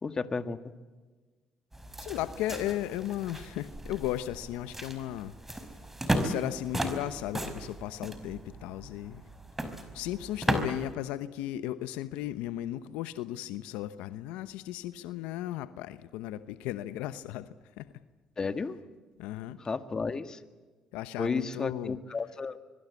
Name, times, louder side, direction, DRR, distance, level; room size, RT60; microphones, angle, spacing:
voice 1, 0.0-0.7 18.4-18.8 19.6-20.4 21.2-22.6, left 4 dB, 35° left, 11 dB, 1.9 m, -33 dB
sound 1, 1.7-10.9, right 1 dB, 15° right, 5.1 m, -36 dB
voice 2, 2.0-5.3 6.2-9.2 9.9-17.9 19.2-19.6 20.9-22.0, left 13 dB, 85° left, 13 dB, 0.9 m, -35 dB
25.5 x 22.0 x 8.3 m, 1.3 s
supercardioid pair, 70°, 2 cm